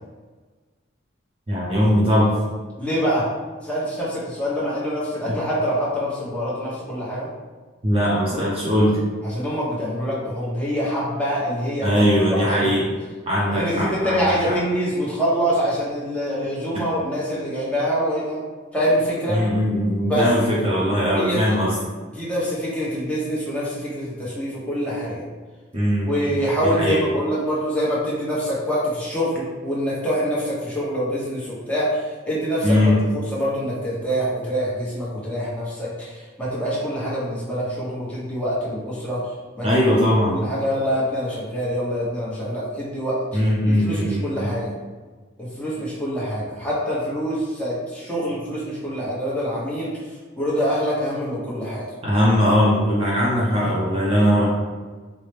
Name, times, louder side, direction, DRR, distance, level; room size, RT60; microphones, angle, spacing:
voice 1, 1.5-2.3 5.3-5.4 7.8-9.0 11.8-12.9 13.3-14.6 19.3-21.8 25.7-26.4 26.6-27.0 32.6-33.0 39.6-40.4 43.3-44.5 52.0-54.5, equal, 30° right, -6 dB, 0.6 m, -20 dB
voice 2, 2.8-3.3 3.6-7.3 9.2-11.9 12.3-12.8 13.5-18.4 18.7-19.4 20.1-20.3 21.1-21.6 22.1-25.2 26.1-32.9 33.3-39.2 39.6-39.7 40.3-43.4 43.7-44.7 45.6-49.9 50.4-51.8, equal, 5° left, -8 dB, 0.9 m, -25 dB
4.6 x 2.1 x 3.3 m, 1.4 s
head